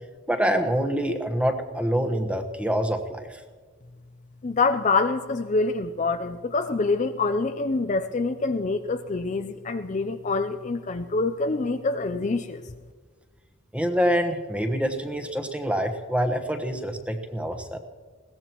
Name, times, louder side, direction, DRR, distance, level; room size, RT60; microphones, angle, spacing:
voice 1, 0.3-3.4 13.7-17.8, equal, 5° right, 6 dB, 1.1 m, -26 dB
voice 2, 4.4-12.6, left 3 dB, 35° left, 8 dB, 0.5 m, -26 dB
21.0 x 17.0 x 3.0 m, 1.5 s
head